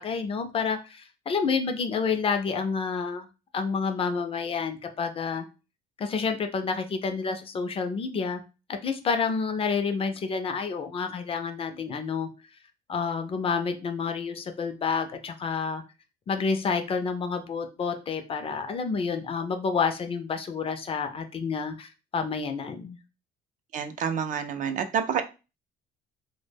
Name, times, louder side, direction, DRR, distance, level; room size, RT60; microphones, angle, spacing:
voice 1, 0.0-3.3 3.5-5.5 6.0-8.4 8.7-12.3 12.9-15.8 16.3-23.0, left 5 dB, 35° left, 0.4 m, -29 dB
voice 2, 23.7-25.2, right 7 dB, 50° right, 0.4 m, -28 dB
2.1 x 2.0 x 3.3 m
cardioid pair, 110°, 17 cm